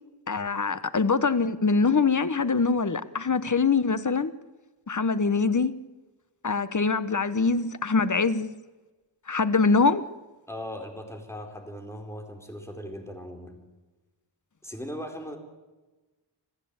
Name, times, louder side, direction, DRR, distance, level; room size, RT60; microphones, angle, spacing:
voice 1, 0.3-4.3 4.9-5.7 6.4-8.5 9.3-10.0, left 4 dB, 40° left, 1.2 m, -24 dB
voice 2, 10.5-13.6 14.6-15.4, equal, 5° left, 4.5 m, -38 dB
27.5 x 14.5 x 8.9 m
wide cardioid pair, 80°, 44 cm